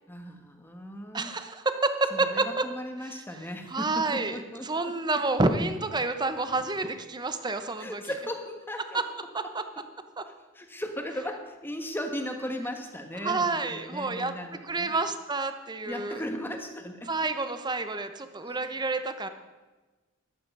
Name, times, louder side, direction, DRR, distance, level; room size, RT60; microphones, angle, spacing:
voice 1, 0.1-1.4 2.1-4.9 7.8-9.0 10.5-14.9 15.8-17.1 18.4-18.7, equal, 10° left, 4 dB, 1.4 m, -37 dB
voice 2, 1.1-2.5 3.7-8.0 8.9-9.0 9.5-9.6 10.2-10.3 13.2-14.3 14.6-16.2 17.1-19.3, right 3 dB, 20° right, 9 dB, 0.9 m, -29 dB
14.5 x 12.0 x 5.4 m, 1.2 s
head